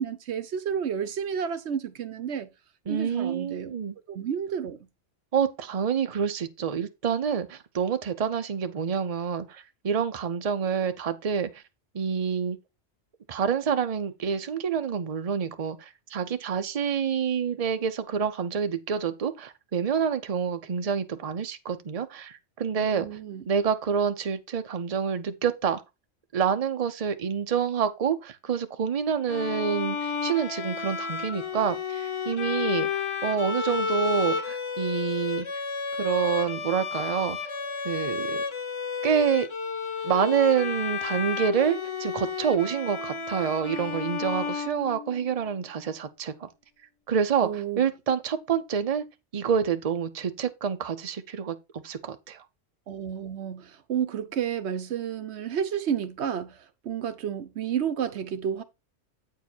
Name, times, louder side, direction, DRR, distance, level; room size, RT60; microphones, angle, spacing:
voice 1, 0.0-2.5 2.9-3.7 4.1-4.8 22.8-23.4 47.4-47.8 52.9-56.6 56.8-58.6, right 8 dB, 70° right, 1.0 m, -31 dB
voice 2, 2.9-3.9 5.3-11.6 11.9-12.6 13.3-23.2 23.5-25.8 26.3-35.5 36.0-37.4 37.8-38.4 39.0-39.5 40.0-46.5 47.1-49.0 49.3-52.4, right 7 dB, 40° right, 0.7 m, -27 dB
Bowed string instrument, 29.3-45.4, left 5 dB, 30° left, 0.6 m, -32 dB
8.3 x 4.7 x 4.4 m
omnidirectional pair, 1.2 m